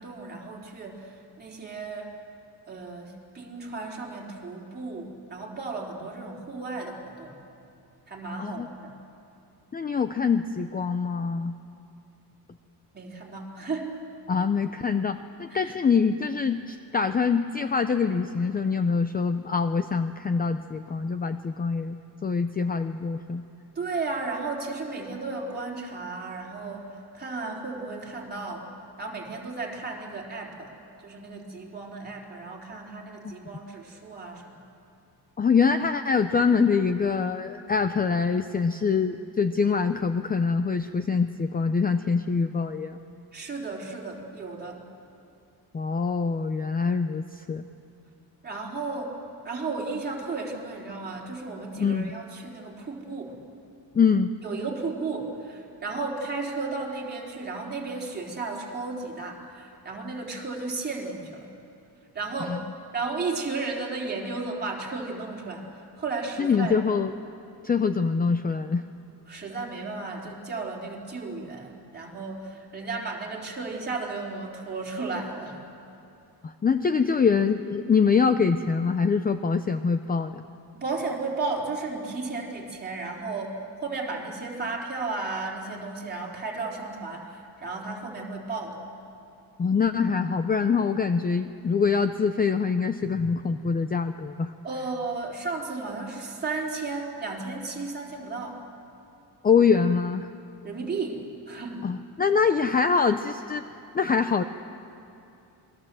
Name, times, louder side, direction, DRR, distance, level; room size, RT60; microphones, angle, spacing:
voice 1, 0.0-2.1 2.7-7.4 8.1-8.9 12.9-13.9 15.5-15.7 23.8-28.7 29.0-34.6 43.3-44.8 48.4-53.4 54.4-61.5 62.1-62.6 62.9-65.7 66.0-66.8 69.3-75.6 80.7-88.8 94.6-98.6 100.6-101.9, right 3 dB, 25° right, -2 dB, 3.7 m, -34 dB
voice 2, 9.7-11.5 14.3-23.4 33.2-33.3 35.4-43.0 45.7-47.6 51.8-52.1 53.9-54.3 62.4-62.6 66.4-67.1 67.6-68.8 76.4-80.4 89.6-94.5 99.4-100.3 101.8-104.4, left 5 dB, 20° left, 9 dB, 0.5 m, -24 dB
27.5 x 21.0 x 7.6 m, 2.8 s
cardioid pair, 155°, 41 cm